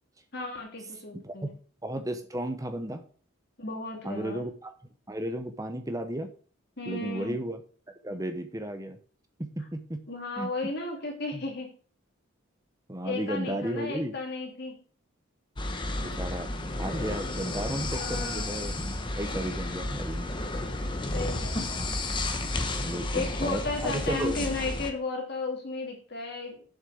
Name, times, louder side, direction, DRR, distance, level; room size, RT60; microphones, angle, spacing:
voice 1, 0.3-1.5 3.6-4.4 6.8-7.4 10.1-11.7 13.0-14.8 17.9-18.5 21.1-21.8 23.1-26.7, left 2 dB, 55° left, 1 dB, 2.6 m, -34 dB
voice 2, 1.8-3.0 4.0-4.7 5.1-6.3 6.9-7.6 8.0-9.0 9.4-10.0 10.4-10.5 11.3-11.4 12.9-14.1 16.0-20.3 22.8-24.4, right 1 dB, 15° right, 8 dB, 1.0 m, -34 dB
sound 1, 15.6-24.9, left 2 dB, 25° left, 1.1 m, -32 dB
7.6 x 6.3 x 7.0 m, 0.43 s
head